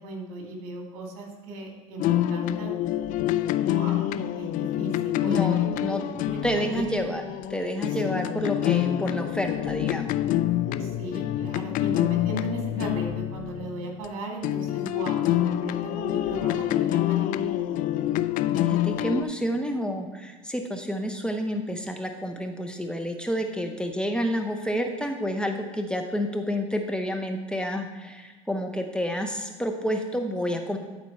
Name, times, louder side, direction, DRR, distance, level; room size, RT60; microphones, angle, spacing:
voice 1, 0.0-2.8 3.6-4.1 4.4-6.9 7.9-8.1 10.8-17.3, right 2 dB, 65° right, 1 dB, 2.1 m, -37 dB
sound 1, 2.0-14.1 14.4-19.2, left 12 dB, 50° left, 0.4 m, -26 dB
voice 2, 5.2-6.0 6.4-7.2 7.5-10.1 18.6-30.8, equal, 5° left, 4 dB, 0.8 m, -29 dB
12.0 x 4.4 x 4.2 m, 1.4 s
hypercardioid pair, 75°, 17 cm